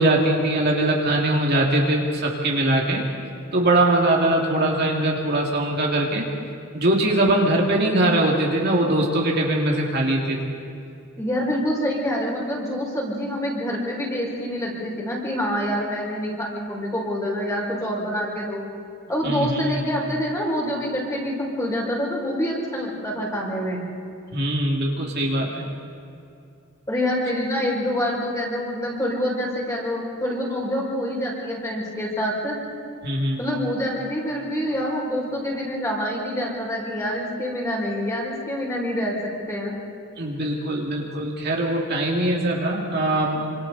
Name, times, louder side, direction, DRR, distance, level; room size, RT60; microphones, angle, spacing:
voice 1, 0.0-3.1 3.5-6.3 6.7-10.5 19.2-19.8 24.3-25.6 33.0-33.4 40.2-43.5, right 1 dB, 50° right, -1 dB, 2.3 m, -21 dB
voice 2, 11.2-18.6 19.1-23.8 26.9-32.6 33.4-39.7, equal, 15° left, -4 dB, 6.0 m, -26 dB
28.0 x 26.0 x 4.1 m, 2.5 s
head